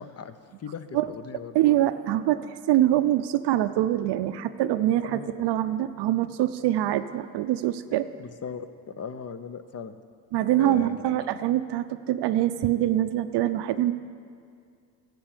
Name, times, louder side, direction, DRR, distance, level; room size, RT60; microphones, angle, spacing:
voice 1, 0.0-1.6 5.0-5.3 8.2-8.7 9.0-10.0 10.5-11.0, left 6 dB, 35° left, 11 dB, 0.8 m, -38 dB
voice 2, 1.5-8.1 10.3-13.9, right 13 dB, 65° right, 11 dB, 0.6 m, -24 dB
11.5 x 7.8 x 7.3 m, 2.2 s
supercardioid pair, 70°, 44 cm